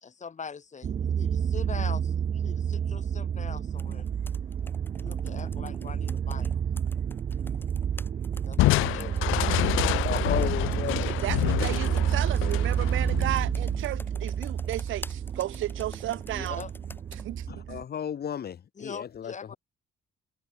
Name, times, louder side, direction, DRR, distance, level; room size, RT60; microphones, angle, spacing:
voice 1, 0.0-4.1 5.0-6.6 8.4-9.7 16.3-16.7 18.8-19.6, left 6 dB, 35° left, 2.2 m, -42 dB
sound 1, 0.8-17.8, right 8 dB, 35° right, 0.4 m, -29 dB
Computer keyboard, 3.8-17.3, left 1 dB, 10° left, 5.8 m, -49 dB
Crushing, 8.6-14.0, left 19 dB, 90° left, 0.4 m, -28 dB
voice 2, 10.0-11.2 17.5-19.6, left 8 dB, 55° left, 1.8 m, -34 dB
voice 3, 11.2-16.6 17.1-17.8, right 14 dB, 80° right, 1.4 m, -34 dB
cardioid pair, 90°, 20 cm